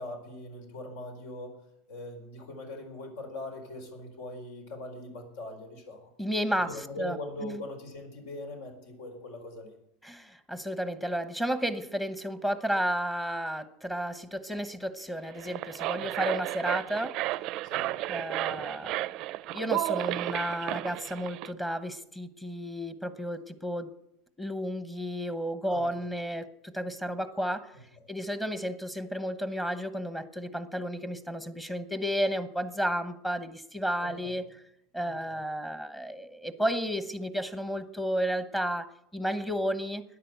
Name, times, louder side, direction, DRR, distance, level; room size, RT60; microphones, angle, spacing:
voice 1, 0.0-1.6 1.9-6.1 6.6-9.7 16.0-16.1 17.7-17.9 25.7-25.9 34.0-34.4 35.0-35.4, left 1 dB, 80° left, 4 dB, 4.6 m, -41 dB
voice 2, 6.2-7.2 7.4-7.6 10.0-17.2 18.1-19.1 19.5-23.9 24.4-34.5 34.9-40.0, equal, 5° left, 11 dB, 1.0 m, -32 dB
sound 1, 15.3-21.5, right 17 dB, 55° right, 0.5 m, -33 dB
12.5 x 10.0 x 8.0 m, 0.76 s
supercardioid pair, 130°, 0 cm